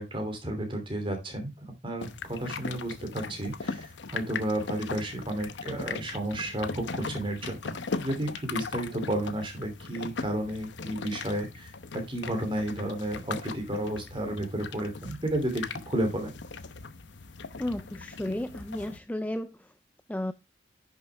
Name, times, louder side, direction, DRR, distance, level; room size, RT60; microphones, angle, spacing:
voice 1, 0.0-16.3, right 1 dB, 25° right, 2.9 m, -32 dB
sound 1, 2.0-19.0, left 4 dB, 65° left, 0.8 m, -39 dB
voice 2, 17.6-19.6 20.1-20.3, left 1 dB, 10° left, 0.4 m, -33 dB
10.5 x 6.5 x 3.4 m
head